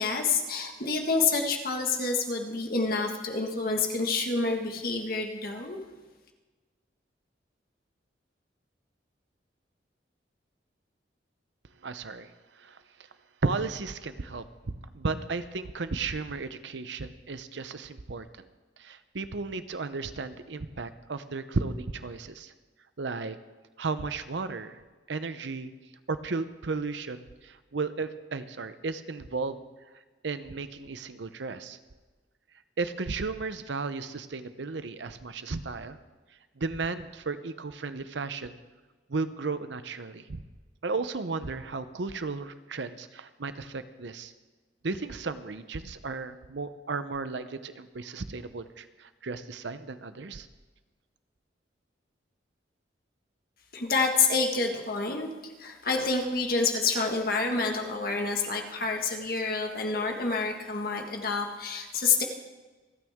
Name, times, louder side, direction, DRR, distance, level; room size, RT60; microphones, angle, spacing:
voice 1, 0.0-5.8 53.7-55.3 55.6-62.2, left 4 dB, 50° left, 2 dB, 1.7 m, -28 dB
voice 2, 11.8-12.3 12.6-12.8 13.4-18.4 18.8-22.5 23.0-23.4 23.8-24.8 25.1-25.7 26.1-29.6 30.2-31.8 32.8-36.0 36.6-38.6 39.1-40.4 40.8-44.3 44.8-50.5, right 4 dB, 75° right, 12 dB, 0.7 m, -34 dB
27.5 x 9.2 x 3.6 m, 1.3 s
head